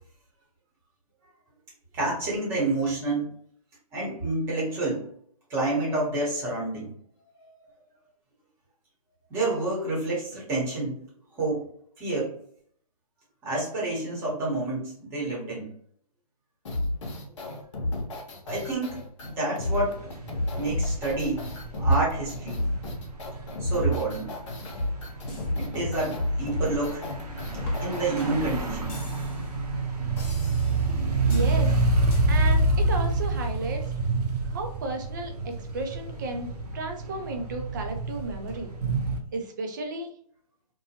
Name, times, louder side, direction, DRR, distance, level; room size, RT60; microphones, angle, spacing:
voice 1, 1.9-3.3 3.9-5.1 5.5-6.9 7.4-7.5 9.3-11.0 11.4-11.6 12.0-12.3 13.4-15.7 18.5-19.9 20.5-21.5 21.8-22.7 23.6-24.4 25.5-27.0 27.8-28.9, right 2 dB, 10° right, -5 dB, 0.9 m, -28 dB
sound 1, 16.6-28.1, left 2 dB, 50° left, 0.8 m, -31 dB
sound 2, 19.7-39.2, right 2 dB, 90° right, 0.8 m, -28 dB
sound 3, 24.8-25.5 25.8-26.1 26.4-26.7 27.0-27.3 27.7-27.8 28.2-28.3 28.9-29.5 30.2-30.9 31.3-31.6 32.1-32.2, left 2 dB, 20° left, 0.6 m, -38 dB
voice 2, 31.3-31.8 32.3-33.8 34.5-38.7 39.3-40.1, right 2 dB, 30° right, 4 dB, 0.4 m, -33 dB
2.8 x 2.2 x 2.8 m, 0.62 s
hypercardioid pair, 160°, 20 cm